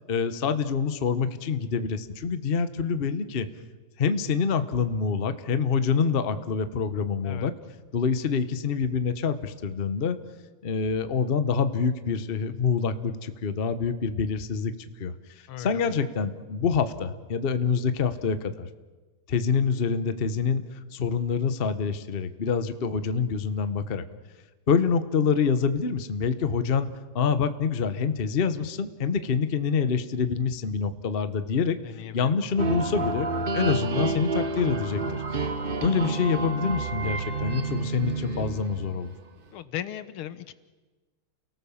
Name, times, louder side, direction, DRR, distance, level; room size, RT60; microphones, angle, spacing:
voice 1, 0.1-3.5 4.0-7.5 7.9-10.2 10.6-14.7 15.0-15.1 15.6-18.7 19.3-20.6 20.9-24.0 24.7-26.9 27.1-31.8 32.1-33.3 33.5-35.2 35.8-39.1, left 6 dB, 40° left, 11 dB, 0.9 m, -26 dB
voice 2, 15.5-16.0 31.8-32.4 39.5-40.5, left 11 dB, 80° left, 14 dB, 1.8 m, -37 dB
sound 1, 32.6-39.2, right 3 dB, 30° right, 1.1 m, -29 dB
29.5 x 18.5 x 7.2 m, 1.3 s
omnidirectional pair, 2.4 m